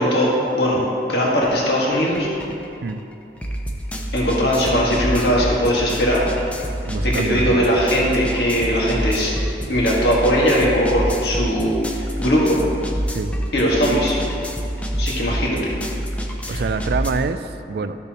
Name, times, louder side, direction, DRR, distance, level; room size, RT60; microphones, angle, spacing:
voice 1, 0.0-2.3 4.1-6.2 7.0-9.3 9.7-12.6 13.5-14.2 15.0-15.7 16.5-16.6, equal, 65° left, -4 dB, 1.6 m, -19 dB
sound 1, 1.4-1.6 1.9-17.1, equal, 10° left, 0.6 m, -27 dB
voice 2, 6.8-7.7 13.1-13.4 16.5-18.0, right 4 dB, 60° right, 11 dB, 0.3 m, -26 dB
13.0 x 6.8 x 2.9 m, 2.6 s
head